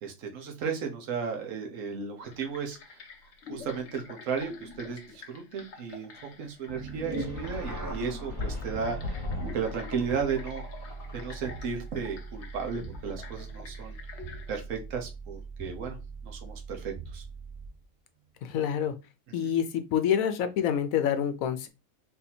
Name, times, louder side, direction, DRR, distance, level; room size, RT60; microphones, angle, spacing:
voice 1, 0.0-3.0 3.5-6.1 6.4-10.6 11.1-14.0 14.5-16.0 16.2-17.2 19.4-19.5, right 6 dB, 70° right, 1.3 m, -34 dB
sound 1, 2.2-14.6, left 5 dB, 60° left, 1.1 m, -48 dB
sound 2, 6.7-17.8, right 3 dB, 15° right, 0.9 m, -41 dB
sound 3, 7.1-11.7, left 3 dB, 35° left, 1.4 m, -39 dB
voice 2, 18.4-18.9 19.3-21.7, left 9 dB, 85° left, 1.0 m, -27 dB
4.0 x 2.7 x 4.2 m
omnidirectional pair, 1.4 m